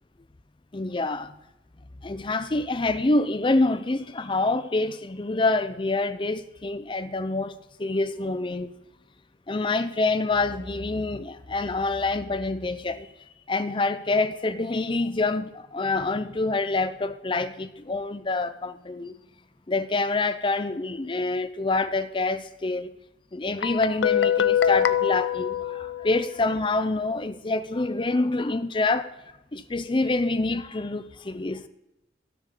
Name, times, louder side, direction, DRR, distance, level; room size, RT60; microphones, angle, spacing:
voice 1, 0.7-1.3 2.0-8.7 9.5-13.1 13.5-19.1 19.7-22.9 23.3-29.1 29.5-31.7, left 2 dB, 25° left, 0.5 m, -26 dB
Guitar, 23.6-26.4, left 9 dB, 85° left, 0.5 m, -24 dB
16.5 x 6.5 x 3.8 m
head